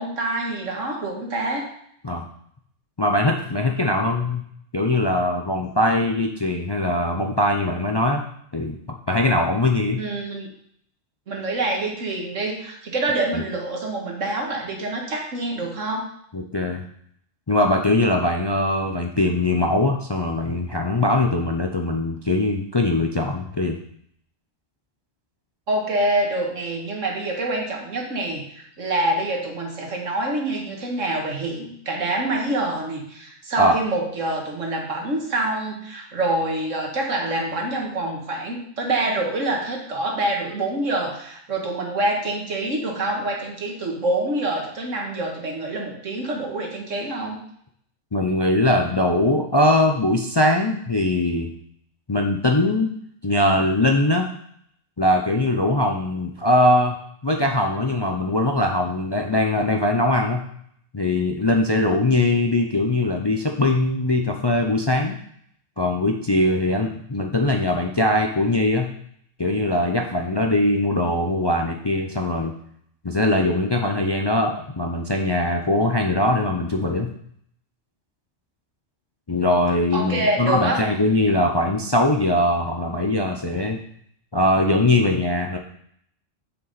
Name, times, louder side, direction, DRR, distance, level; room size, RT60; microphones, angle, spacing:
voice 1, 0.0-1.7 10.0-10.5 11.3-16.1 25.7-47.4 79.9-80.8, right 2 dB, 80° right, 0 dB, 1.9 m, -26 dB
voice 2, 3.0-4.4 4.7-8.2 8.5-8.8 9.1-10.0 13.3-13.4 16.3-16.8 17.5-23.8 33.6-33.7 48.1-51.5 52.1-52.9 53.2-54.3 55.0-56.9 57.2-60.4 60.9-65.2 65.8-68.9 69.4-72.5 73.0-77.1 79.3-83.8 84.3-85.6, left 1 dB, 30° left, 2 dB, 0.5 m, -21 dB
7.0 x 6.8 x 4.1 m, 0.68 s
omnidirectional pair, 1.3 m